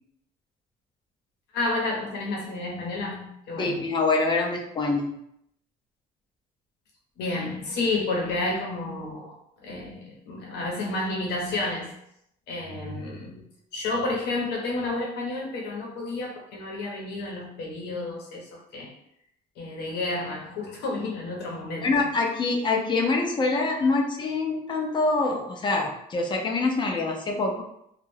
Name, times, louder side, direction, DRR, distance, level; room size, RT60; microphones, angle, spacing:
voice 1, 1.5-3.8 7.2-11.9 12.5-13.4 13.7-18.9 19.6-22.0, left 2 dB, 80° left, -2 dB, 0.8 m, -31 dB
voice 2, 3.6-5.2 21.8-27.6, left 3 dB, 30° left, 1 dB, 0.5 m, -25 dB
2.3 x 2.1 x 3.2 m, 0.75 s
cardioid pair, 110°, 17 cm